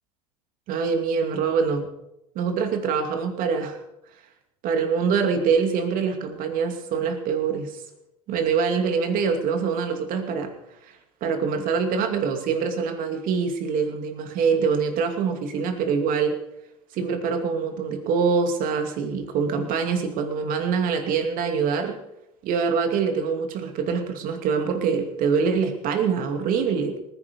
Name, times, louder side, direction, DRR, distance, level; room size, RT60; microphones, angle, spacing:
voice 1, 0.7-1.9 2.3-3.8 4.6-7.7 8.3-10.5 11.2-16.3 16.9-22.0 22.4-27.0, right 5 dB, 50° right, 6 dB, 2.6 m, -24 dB
19.0 x 10.0 x 5.4 m, 0.86 s
supercardioid pair, 110°, 18 cm